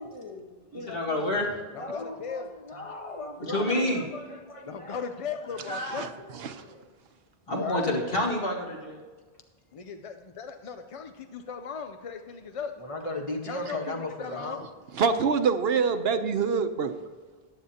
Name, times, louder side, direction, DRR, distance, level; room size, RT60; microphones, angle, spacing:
voice 1, 0.0-1.4 1.7-5.0 5.6-6.9 7.5-8.0 12.8-14.6, left 2 dB, 30° left, 2 dB, 1.3 m, -37 dB
voice 2, 0.9-1.5 3.4-4.0 7.5-9.0, left 1 dB, 65° left, -1 dB, 2.1 m, -27 dB
voice 3, 1.7-2.5 4.7-6.1 9.7-12.7 13.5-13.8 14.2-14.6, left 6 dB, 50° left, 7 dB, 0.4 m, -37 dB
voice 4, 15.0-16.9, right 5 dB, 75° right, 8 dB, 1.0 m, -25 dB
14.5 x 10.0 x 2.8 m, 1.4 s
omnidirectional pair, 1.0 m